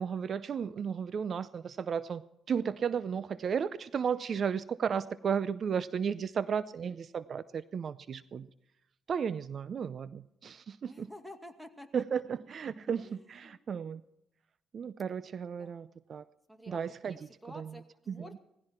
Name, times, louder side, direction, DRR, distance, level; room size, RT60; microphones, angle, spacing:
voice 1, 0.0-2.2 2.5-8.5 9.1-11.1 11.9-14.0 14.7-16.2 16.7-17.1 17.5-17.7 18.1-18.3, right 7 dB, 50° right, 15 dB, 0.5 m, -34 dB
voice 2, 10.8-12.0 13.0-13.6 15.6-15.9 16.5-16.8 17.1-18.4, left 1 dB, ahead, 6 dB, 2.2 m, -50 dB
18.0 x 15.0 x 4.5 m, 0.82 s
cardioid pair, 90°, 0 cm